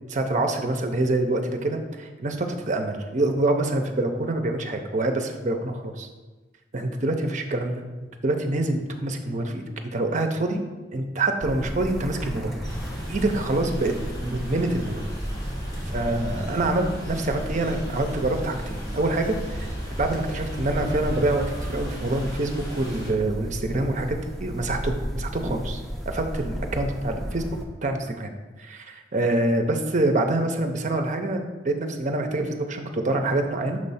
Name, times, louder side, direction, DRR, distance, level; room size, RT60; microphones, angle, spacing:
voice 1, 0.1-6.1 6.7-7.8 8.2-9.6 9.9-10.6 10.9-12.5 13.1-13.9 14.2-15.0 15.9-25.8 26.1-27.4 27.8-28.3 28.6-33.8, right 2 dB, 40° right, 5 dB, 0.6 m, -26 dB
sound 1, 11.4-27.6, equal, ahead, 0.6 m, -33 dB
sound 2, 12.6-23.1, equal, 20° left, 1.7 m, -39 dB
6.2 x 3.2 x 5.6 m, 1.2 s
head